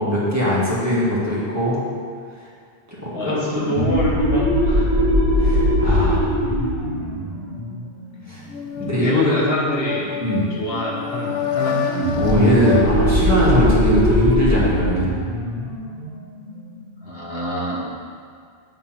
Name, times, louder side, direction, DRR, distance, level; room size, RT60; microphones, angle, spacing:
voice 1, 0.0-1.8 3.0-3.4 5.4-6.3 8.3-8.4 8.8-9.4 10.2-10.5 12.2-15.1, left 1 dB, 15° right, -9 dB, 2.0 m, -21 dB
voice 2, 3.1-4.9 5.8-6.1 8.2-8.4 9.0-10.0 10.6-11.8 17.0-17.9, left 1 dB, 70° left, -5 dB, 1.6 m, -26 dB
sound 1, 3.6-8.9 11.9-17.2, equal, 70° right, 2.1 m, -21 dB
sound 2, 8.5-14.3, left 7 dB, 85° left, 1.0 m, -28 dB
9.7 x 4.0 x 5.8 m, 2.2 s
omnidirectional pair, 1.0 m